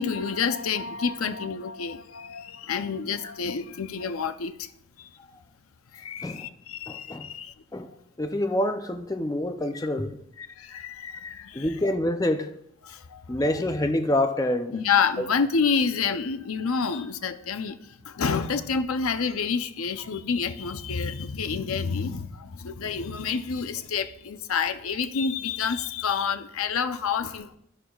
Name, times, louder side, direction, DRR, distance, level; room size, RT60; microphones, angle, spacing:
voice 1, 0.0-4.7 5.0-5.1 5.9-7.5 10.4-11.7 12.8-13.4 14.7-27.6, left 5 dB, 85° left, 0.6 m, -28 dB
voice 2, 6.9-7.3 7.7-7.9 8.2-10.2 11.5-12.5 13.3-14.8 15.2-15.3, left 1 dB, 15° left, 0.4 m, -26 dB
12.0 x 11.0 x 2.4 m
head